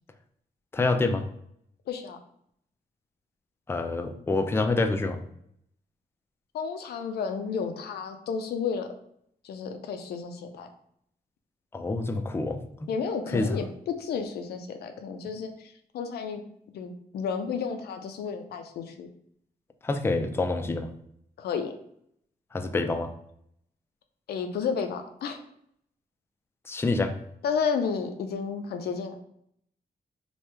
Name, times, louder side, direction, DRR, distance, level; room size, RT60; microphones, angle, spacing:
voice 1, 0.7-1.2 3.7-5.2 11.7-12.6 13.3-13.6 19.8-20.9 22.5-23.1 26.7-27.1, left 3 dB, 15° left, 7 dB, 0.3 m, -27 dB
voice 2, 1.9-2.2 6.5-8.9 9.4-10.7 12.9-16.4 16.7-19.1 21.4-21.7 24.3-25.4 27.4-29.2, left 6 dB, 80° left, 6 dB, 0.4 m, -32 dB
3.0 x 2.2 x 3.3 m, 0.70 s
cardioid pair, 65°, 16 cm